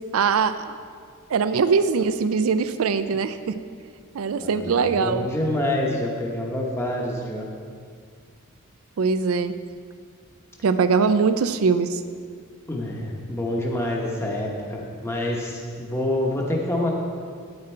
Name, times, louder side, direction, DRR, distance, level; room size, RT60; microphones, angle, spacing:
voice 1, 0.1-0.8 1.3-3.6 4.1-5.2 9.0-9.5 10.6-12.0, right 5 dB, 70° right, 11 dB, 0.4 m, -22 dB
voice 2, 4.4-7.5 12.7-16.9, left 1 dB, 10° left, -2 dB, 0.9 m, -27 dB
9.6 x 8.8 x 4.4 m, 2.1 s
head